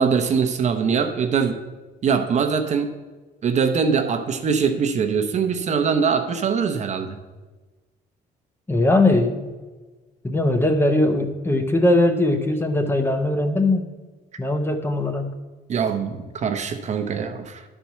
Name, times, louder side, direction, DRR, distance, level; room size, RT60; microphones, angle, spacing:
voice 1, 0.0-1.6 2.0-2.9 3.4-7.2 15.7-17.6, right 6 dB, 45° right, 7 dB, 0.8 m, -22 dB
voice 2, 8.7-9.5 10.2-13.9 14.4-15.3, left 2 dB, 15° left, 6 dB, 0.8 m, -20 dB
10.5 x 4.5 x 5.7 m, 1.3 s
cardioid pair, 110°, 17 cm